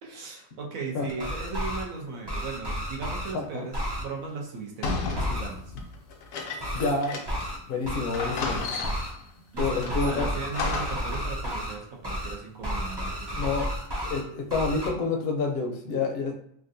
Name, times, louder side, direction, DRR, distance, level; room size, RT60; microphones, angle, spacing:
voice 1, 0.0-5.7 9.5-13.6, right 4 dB, 85° right, -1 dB, 1.2 m, -37 dB
voice 2, 0.9-1.3 3.3-3.7 6.7-7.2 7.7-8.7 9.6-10.3 13.4-13.7 14.0-16.4, left 3 dB, 55° left, 2 dB, 0.7 m, -28 dB
sound 1, 1.1-1.8 2.3-3.3 3.7-4.0 5.1-5.5 6.6-6.9 7.3-7.6 7.8-9.1 9.5-11.7 12.0-12.3 12.6-14.2 14.5-14.9, equal, 30° right, 0.4 m, -32 dB
sound 2, 4.8-7.6 7.8-7.9 8.1-9.2 9.8-11.2, left 4 dB, 75° left, 1.0 m, -33 dB
3.5 x 2.5 x 2.6 m, 0.70 s
omnidirectional pair, 1.4 m